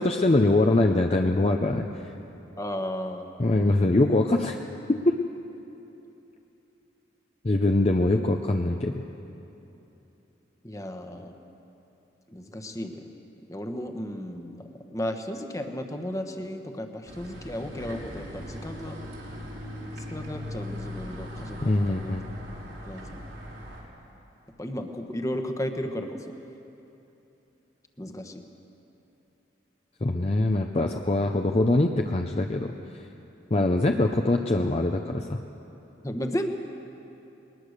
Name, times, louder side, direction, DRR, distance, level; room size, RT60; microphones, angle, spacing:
voice 1, 0.0-2.1 3.4-4.6 4.9-5.2 7.4-9.0 21.6-22.3 30.0-33.1 33.5-35.4, left 2 dB, 35° left, 4 dB, 0.6 m, -23 dB
voice 2, 2.6-3.3 10.6-11.3 12.3-13.0 13.5-19.0 20.0-22.1 22.8-23.2 24.6-26.3 28.0-28.5 33.7-33.8 36.0-36.5, equal, 15° left, 5 dB, 1.2 m, -34 dB
sound 1, 17.1-23.8, left 1 dB, 90° right, 4.3 m, -39 dB
20.5 x 20.5 x 6.6 m, 3.0 s
head